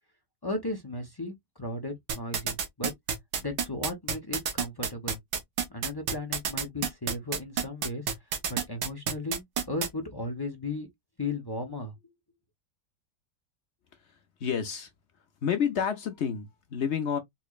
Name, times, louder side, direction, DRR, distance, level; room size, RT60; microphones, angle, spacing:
voice 1, 0.4-2.9 3.4-5.2 5.7-8.0 8.5-10.9 11.2-11.9, left 2 dB, 25° left, 0.5 m, -35 dB
sound 1, 2.1-9.9, right 7 dB, 90° right, 1.6 m, -29 dB
voice 2, 14.4-14.9 15.4-17.2, left 7 dB, 55° left, 0.8 m, -29 dB
4.2 x 3.0 x 2.4 m
omnidirectional pair, 1.8 m